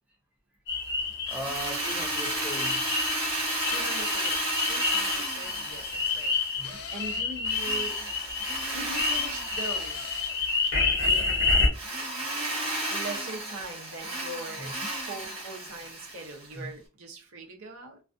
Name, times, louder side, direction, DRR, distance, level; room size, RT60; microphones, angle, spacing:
sound 1, 0.7-11.7, left 4 dB, 55° left, 0.9 m, -29 dB
voice 1, 1.3-2.8 6.6-6.8 14.6-14.7 16.6-16.7, equal, 5° right, 0.3 m, -38 dB
Drill, 1.3-6.8 7.5-10.8 11.7-16.5, right 1 dB, 25° right, 1.0 m, -33 dB
sound 2, 3.7-4.4 6.6-7.4 9.6-10.4 12.6-13.4, left 6 dB, 80° left, 0.5 m, -44 dB
voice 2, 3.7-4.4 4.7-8.0 8.7-10.4 11.0-11.6 12.9-14.7 15.0-18.0, right 2 dB, 75° right, 0.7 m, -41 dB
2.3 x 2.3 x 2.5 m
head